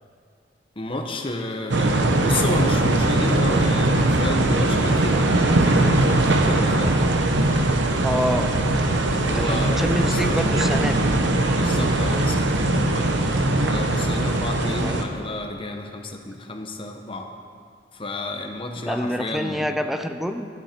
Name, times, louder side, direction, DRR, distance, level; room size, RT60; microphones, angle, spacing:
voice 1, 0.8-5.3 5.6-7.1 9.1-10.5 11.5-13.2 13.5-17.3 17.9-19.7, left 2 dB, 30° left, 4 dB, 1.0 m, -31 dB
sound 1, 1.7-15.0, right 2 dB, 65° right, 0.9 m, -20 dB
voice 2, 8.0-8.5 9.3-11.1 14.7-15.0 18.9-20.5, equal, ahead, 6 dB, 0.5 m, -27 dB
13.0 x 11.0 x 4.4 m, 2.2 s
head